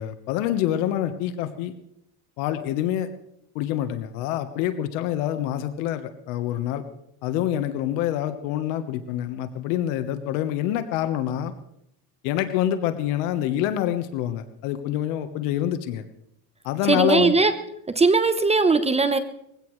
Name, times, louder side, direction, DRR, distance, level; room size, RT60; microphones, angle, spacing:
voice 1, 0.0-1.7 2.4-3.1 3.5-6.8 7.2-11.5 12.2-16.0 16.6-17.3, left 11 dB, 75° left, 10 dB, 1.3 m, -26 dB
voice 2, 16.9-17.5 17.9-19.2, right 3 dB, 15° right, 10 dB, 0.9 m, -19 dB
21.5 x 16.5 x 3.2 m, 0.77 s
supercardioid pair, 125°, 45 cm